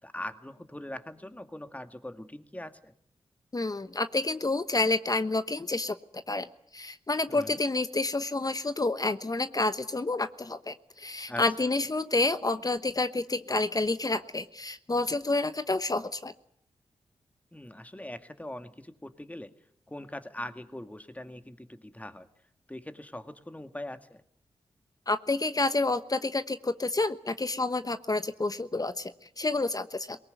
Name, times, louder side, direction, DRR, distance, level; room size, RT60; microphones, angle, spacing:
voice 1, 0.0-2.9 7.3-7.6 11.3-11.7 17.5-19.5 19.9-22.3 22.7-24.2, left 1 dB, 15° left, 8 dB, 2.1 m, -41 dB
voice 2, 3.5-5.9 6.3-6.5 6.7-16.3 25.1-30.2, left 2 dB, 35° left, 11 dB, 1.1 m, -29 dB
21.5 x 19.0 x 9.4 m, 0.69 s
cardioid pair, 40°, 11 cm